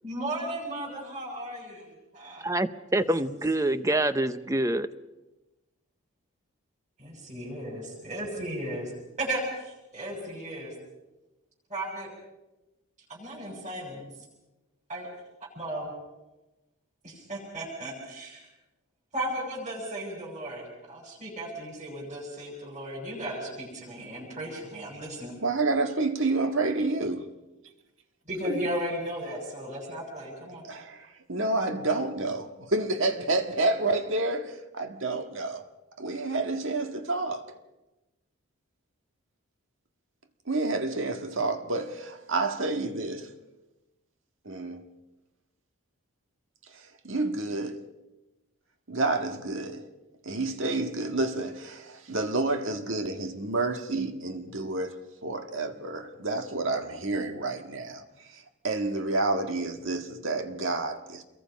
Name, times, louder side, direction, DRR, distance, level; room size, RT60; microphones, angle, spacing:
voice 1, 0.0-1.9 2.1-2.5 7.0-8.9 9.2-10.7 11.7-12.1 13.1-14.1 14.9-15.1 15.5-15.9 17.0-18.5 19.1-25.4 28.3-30.7, right 1 dB, 35° right, 7.5 m, -35 dB
voice 2, 2.4-4.9, right 1 dB, 15° right, 0.7 m, -26 dB
voice 3, 25.4-27.3 28.4-28.7 30.7-35.6 36.0-37.5 40.5-43.3 44.5-44.9 46.7-47.8 48.9-49.9 50.2-58.0 58.3-61.2, right 2 dB, 65° right, 1.8 m, -29 dB
28.5 x 22.5 x 5.3 m
head